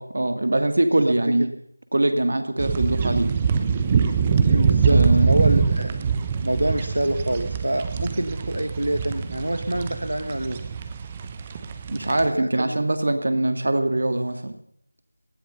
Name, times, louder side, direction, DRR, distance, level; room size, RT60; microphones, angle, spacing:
voice 1, 0.0-1.5 1.9-3.3 4.9-5.4 11.9-14.5, right 1 dB, 60° right, 8 dB, 2.4 m, -22 dB
sound 1, 2.6-12.3, right 6 dB, 20° right, 1.0 m, -23 dB
voice 2, 4.5-6.0 6.4-10.6 12.2-12.8, right 1 dB, 85° right, 8 dB, 1.6 m, -26 dB
18.5 x 13.5 x 5.5 m, 0.67 s
figure-of-eight pair, 170°, 0 cm